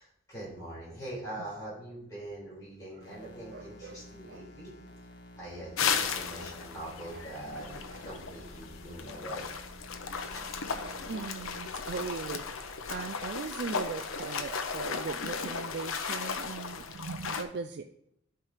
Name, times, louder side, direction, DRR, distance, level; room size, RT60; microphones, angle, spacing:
voice 1, 0.0-4.7 5.4-7.7 8.0-9.5 10.1-10.5, right 1 dB, 15° left, -8 dB, 4.1 m, -43 dB
sound 1, 3.0-11.8, left 1 dB, 55° left, 1.1 m, -51 dB
voice 2, 3.2-4.0 4.3-4.5 7.1-7.2 7.5-7.7 7.9-8.0 10.4-17.9, right 5 dB, 50° right, 7 dB, 0.3 m, -40 dB
sound 2, 5.8-17.4, left 5 dB, 90° left, 0.8 m, -35 dB
12.0 x 4.5 x 4.9 m, 0.75 s
head